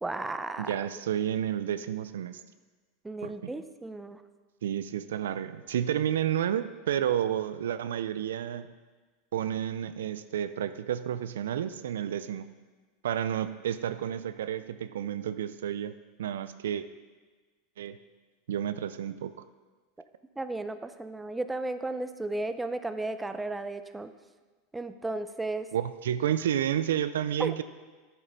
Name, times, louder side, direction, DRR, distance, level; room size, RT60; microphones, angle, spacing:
voice 1, 0.0-0.9 3.0-4.2 20.4-24.1 24.7-25.7 27.4-27.5, right 2 dB, 10° right, 10 dB, 0.5 m, -34 dB
voice 2, 0.6-2.4 3.2-3.5 4.6-8.7 9.3-12.5 13.0-15.9 16.2-16.9 17.8-18.0 18.5-19.3 25.7-27.6, right 10 dB, 85° right, 13 dB, 0.4 m, -31 dB
10.0 x 7.5 x 4.0 m, 1.3 s
hypercardioid pair, 115°, 0 cm